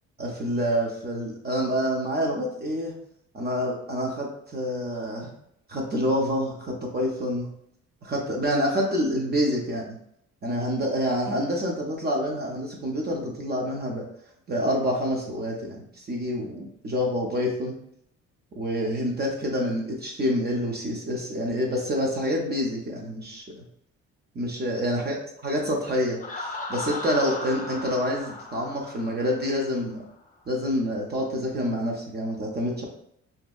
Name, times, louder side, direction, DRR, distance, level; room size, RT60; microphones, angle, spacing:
voice 1, 0.2-2.9 3.3-5.3 5.7-7.5 8.0-10.0 10.4-14.1 14.5-17.7 18.6-23.4 24.4-25.2 25.4-30.0 30.5-32.8, equal, 35° right, -1 dB, 0.5 m, -27 dB
Laughter, 26.2-29.9, left 3 dB, 25° left, 0.6 m, -36 dB
2.7 x 2.2 x 2.3 m, 0.72 s
cardioid pair, 90°, 30 cm